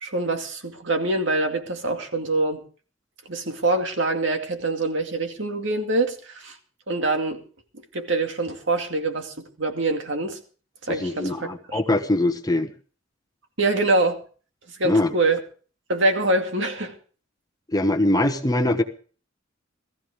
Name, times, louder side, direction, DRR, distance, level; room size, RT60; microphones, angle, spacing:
voice 1, 0.0-2.6 3.3-6.5 6.9-7.4 7.9-9.3 9.6-10.4 10.8-11.8 13.6-14.2 14.8-15.4 15.9-16.9, right 2 dB, 65° right, 4 dB, 2.4 m, -24 dB
voice 2, 10.9-12.7 14.8-15.1 17.7-18.8, left 1 dB, 20° left, 6 dB, 1.1 m, -22 dB
19.0 x 14.5 x 3.6 m, 0.39 s
head